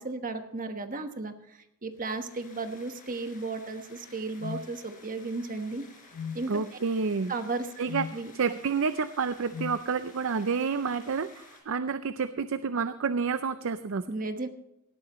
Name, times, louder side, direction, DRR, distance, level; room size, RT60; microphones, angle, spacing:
voice 1, 0.0-1.3 1.8-5.8 6.3-6.6 7.3-7.9 8.1-8.3 14.1-14.5, right 3 dB, 40° right, 7 dB, 1.2 m, -34 dB
sound 1, 1.9-11.6, left 3 dB, 40° left, 4.4 m, -55 dB
sound 2, 4.4-4.7 6.1-6.4 7.9-8.2 9.5-9.8, left 6 dB, 70° left, 0.4 m, -36 dB
voice 2, 6.5-7.3 7.8-14.1, right 5 dB, 65° right, 12 dB, 0.5 m, -29 dB
18.5 x 13.0 x 3.1 m, 0.83 s
head